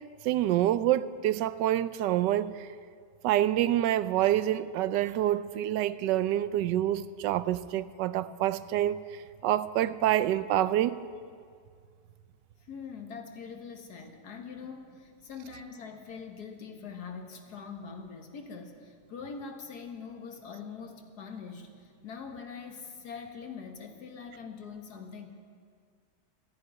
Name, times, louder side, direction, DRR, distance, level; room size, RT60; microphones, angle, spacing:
voice 1, 0.2-2.7 3.2-9.0 9.4-11.0, right 12 dB, 90° right, 1.2 m, -27 dB
voice 2, 12.6-25.3, left 5 dB, 65° left, 1.9 m, -43 dB
14.5 x 11.0 x 9.2 m
omnidirectional pair, 1.8 m